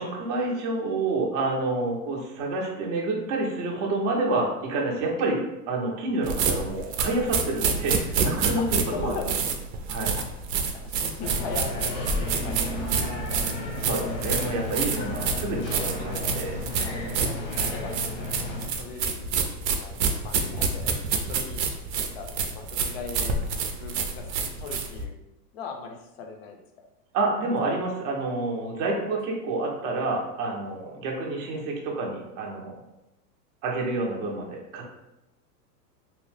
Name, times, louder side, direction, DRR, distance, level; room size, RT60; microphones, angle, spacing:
voice 1, 0.0-9.1 9.9-10.2 13.8-16.6 27.1-32.7 33.6-34.9, right 2 dB, 35° right, -1 dB, 0.5 m, -28 dB
sound 1, 6.2-25.0, right 5 dB, 80° right, 0.6 m, -27 dB
voice 2, 8.6-9.4 10.1-10.3 10.7-13.4 14.7-14.8 16.8-17.4 17.7-17.9 18.7-19.2 19.8-21.6 21.9-23.4 23.7-25.1 25.5-26.6 28.8-28.9 31.4-31.5, left 5 dB, 45° left, 3 dB, 0.4 m, -39 dB
sound 2, 11.2-18.7, left 2 dB, 90° left, 1.0 m, -33 dB
2.7 x 2.0 x 3.1 m, 0.93 s
supercardioid pair, 140°, 49 cm